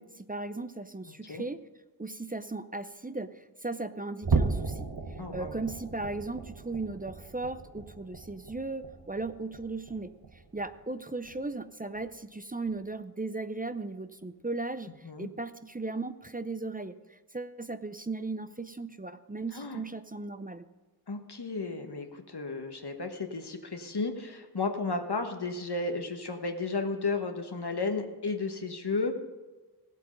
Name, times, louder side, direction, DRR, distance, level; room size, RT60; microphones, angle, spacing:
voice 1, 0.0-1.6 2.0-4.9 5.3-20.6, right 3 dB, 20° right, 11 dB, 0.5 m, -37 dB
voice 2, 1.0-1.4 5.2-5.5 15.0-15.3 19.5-19.8 21.1-29.2, left 3 dB, 75° left, 5 dB, 1.2 m, -33 dB
sound 1, 4.2-10.9 11.2-11.5 12.0-12.1 12.7-12.8, right 4 dB, 65° right, 1.0 m, -35 dB
16.5 x 8.1 x 5.3 m, 1.2 s
wide cardioid pair, 40°, 39 cm